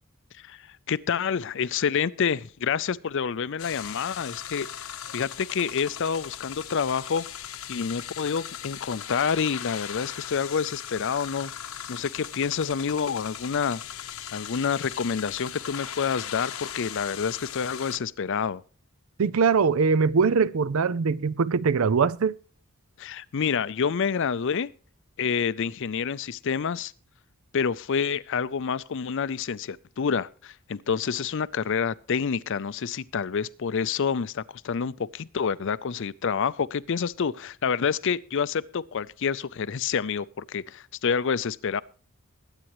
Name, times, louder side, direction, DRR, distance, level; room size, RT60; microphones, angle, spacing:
voice 1, 0.4-4.9 5.1-7.3 7.7-11.5 11.9-13.8 14.3-18.6 23.0-24.7 25.2-26.9 27.5-41.8, left 6 dB, 60° left, 0.5 m, -28 dB
sound 1, 3.6-18.0, left 9 dB, 75° left, 0.9 m, -38 dB
voice 2, 19.2-22.3, right 5 dB, 70° right, 0.5 m, -22 dB
21.5 x 9.0 x 3.1 m
head